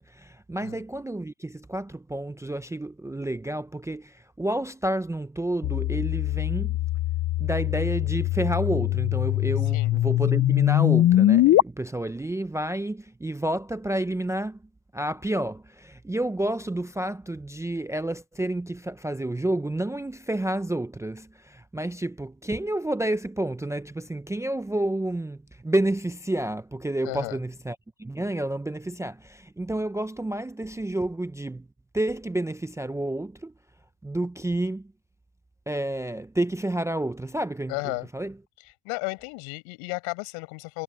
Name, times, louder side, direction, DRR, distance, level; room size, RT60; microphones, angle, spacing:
voice 1, 0.0-6.8 7.4-14.6 14.9-31.7 31.9-33.5 34.0-34.9 35.7-38.4, right 1 dB, 5° right, 0.6 m, -30 dB
sound 1, 5.6-11.6, left 14 dB, 35° left, 0.6 m, -22 dB
voice 2, 27.0-27.4 37.7-38.1 38.8-40.8, left 35 dB, 80° left, 6.8 m, -33 dB
supercardioid pair, 110°, 49 cm